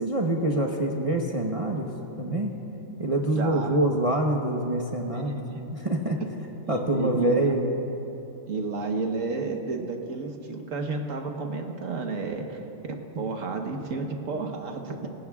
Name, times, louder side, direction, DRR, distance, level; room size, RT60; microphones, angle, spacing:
voice 1, 0.0-1.9 2.2-2.5 3.0-6.2 6.7-7.6, right 1 dB, 30° right, -1 dB, 0.9 m, -26 dB
voice 2, 3.3-3.8 5.1-5.6 6.7-7.4 8.5-15.1, right 3 dB, 70° right, 3 dB, 1.6 m, -32 dB
26.0 x 15.5 x 2.4 m, 2.9 s
omnidirectional pair, 1.4 m